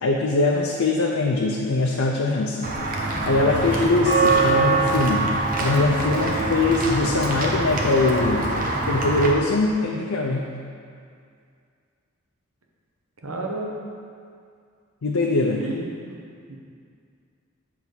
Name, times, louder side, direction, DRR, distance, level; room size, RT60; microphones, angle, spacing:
voice 1, 0.0-2.7 3.3-8.5 8.9-10.5 15.0-15.6, left 3 dB, 85° left, -1 dB, 0.6 m, -22 dB
Walk footsteps / Bell, 2.6-9.3, right 3 dB, 40° right, 0.8 m, -23 dB
voice 2, 13.2-13.8 15.6-15.8 16.5-16.6, right 2 dB, 90° right, -1 dB, 1.1 m, -30 dB
7.3 x 3.4 x 6.1 m, 2.3 s
head